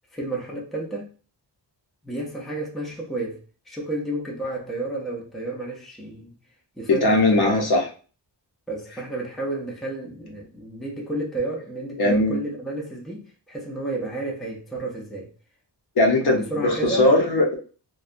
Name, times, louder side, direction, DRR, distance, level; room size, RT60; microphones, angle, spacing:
voice 1, 0.1-1.1 2.0-6.3 6.8-7.5 8.7-15.3 16.3-17.1, right 2 dB, ahead, 0.5 m, -31 dB
voice 2, 6.9-7.9 11.9-12.4 16.0-17.6, left 2 dB, 60° left, 0.8 m, -19 dB
2.6 x 2.2 x 2.4 m
wide cardioid pair, 120°, 43 cm